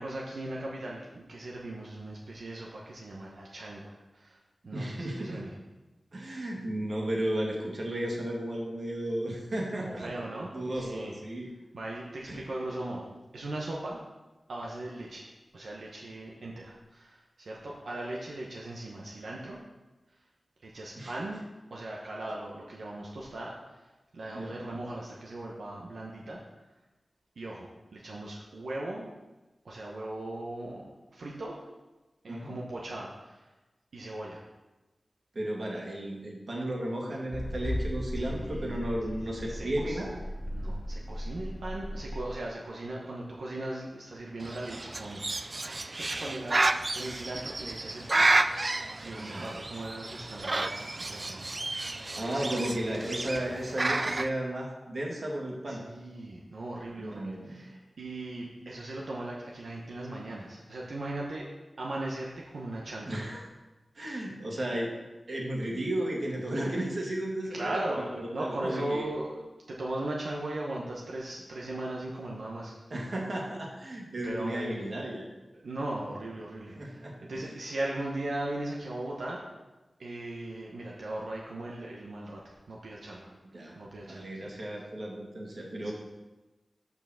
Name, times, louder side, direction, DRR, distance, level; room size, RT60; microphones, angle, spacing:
voice 1, 0.0-4.4 4.6-5.5 9.8-11.1 11.7-13.1 13.3-14.0 14.5-15.3 15.5-19.6 20.6-21.4 21.7-23.9 24.1-26.4 27.4-29.1 29.6-30.8 31.1-31.6 32.2-33.5 33.9-34.4 38.2-38.8 39.5-40.0 40.5-48.3 49.0-51.5 52.2-52.4 53.3-53.5 55.7-61.5 61.8-63.2 67.5-72.7 74.2-74.9 75.6-79.4 80.0-83.3 83.8-84.5 85.8-85.9, right 1 dB, 90° right, -3 dB, 1.0 m, -38 dB
voice 2, 4.7-5.4 6.1-11.5 12.3-12.4 21.0-21.1 24.3-24.5 32.3-32.6 35.3-40.1 49.2-49.5 52.1-55.8 57.0-57.6 63.1-63.4 64.0-64.9 65.3-69.1 72.9-75.3 76.8-77.4 83.5-83.8 84.1-85.9, right 1 dB, 60° right, -1 dB, 2.0 m, -34 dB
sound 1, 37.3-42.4, equal, 35° left, 0.6 m, -36 dB
Bird, 44.4-54.3, right 2 dB, 40° right, 0.4 m, -31 dB
6.7 x 5.7 x 6.3 m, 1.1 s
wide cardioid pair, 65°, 0 cm